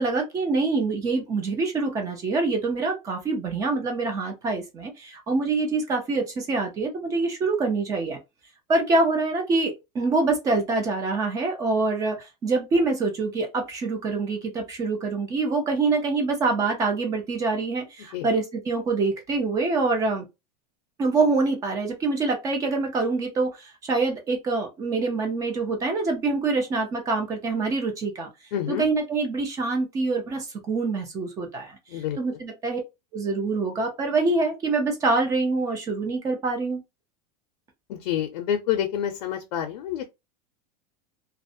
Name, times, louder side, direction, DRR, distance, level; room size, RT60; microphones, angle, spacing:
voice 1, 0.0-8.2 8.7-20.3 21.0-28.3 28.7-32.8 33.1-36.8, right 3 dB, 15° right, 0.4 m, -25 dB
voice 2, 28.5-28.9 31.9-32.4 37.9-40.0, left 10 dB, 85° left, 0.5 m, -28 dB
2.4 x 2.1 x 2.5 m
supercardioid pair, 170°, 21 cm